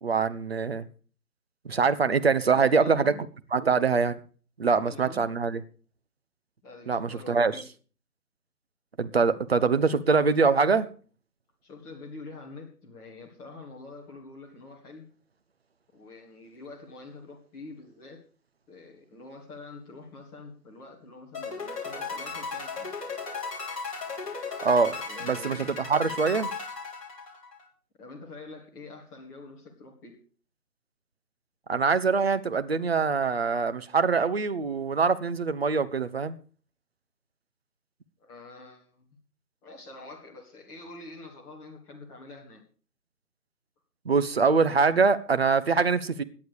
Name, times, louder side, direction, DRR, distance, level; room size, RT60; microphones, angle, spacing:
voice 1, 0.0-0.9 1.6-3.1 3.5-4.2 4.6-5.6 6.9-7.5 9.0-10.9 24.6-25.0 25.2-26.5 31.7-36.4 44.0-46.2, right 5 dB, 40° right, 1.2 m, -24 dB
voice 2, 2.5-3.2 4.7-5.2 6.6-7.6 11.6-15.1 15.9-18.2 18.7-22.9 25.1-25.8 28.0-30.2 38.2-39.1 39.6-42.6, left 3 dB, 5° left, 1.8 m, -46 dB
sound 1, 21.3-27.6, left 4 dB, 20° left, 3.3 m, -36 dB
17.5 x 10.5 x 4.9 m
figure-of-eight pair, 155°, 47 cm